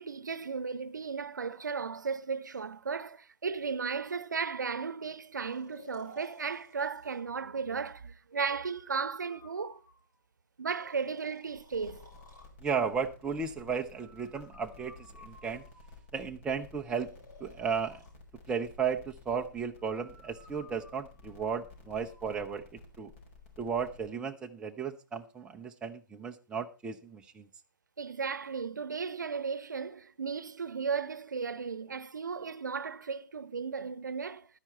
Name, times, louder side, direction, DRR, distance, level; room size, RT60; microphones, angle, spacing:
voice 1, 0.0-9.8 10.6-12.1 28.0-34.5, right 5 dB, 65° right, 0.9 m, -35 dB
Breathing, 5.4-7.2 8.5-10.2 10.8-12.6 13.9-16.2 17.0-18.1 19.8-22.6, left 1 dB, 65° left, 7.4 m, -56 dB
sound 1, 11.6-24.1, left 3 dB, 40° left, 4.6 m, -54 dB
voice 2, 12.6-14.9 15.2-15.6 16.1-17.1 17.4-18.0 18.5-22.6 23.0-23.1 23.6-27.5, right 6 dB, 10° right, 0.6 m, -34 dB
12.5 x 10.0 x 4.3 m
figure-of-eight pair, 125°, 11 cm